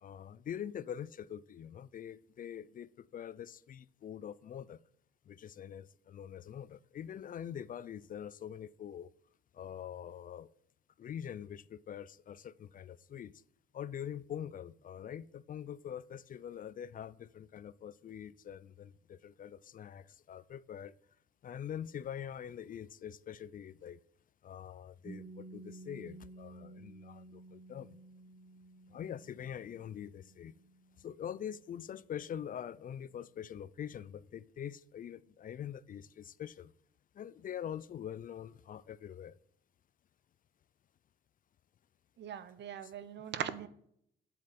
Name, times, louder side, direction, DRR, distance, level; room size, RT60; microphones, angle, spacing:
voice 1, 0.0-4.8 5.3-9.1 9.5-10.5 11.0-13.3 13.7-20.9 21.4-24.0 24.4-28.0 28.9-30.5 31.0-36.7 37.1-39.4, left 9 dB, 45° left, 19 dB, 0.4 m, -44 dB
Piano, 25.0-32.3, right 3 dB, 20° right, 1.5 m, -54 dB
voice 2, 42.2-43.7, right 9 dB, 60° right, 14 dB, 0.8 m, -40 dB
7.8 x 7.5 x 5.1 m, 0.69 s
cardioid pair, 90°, 20 cm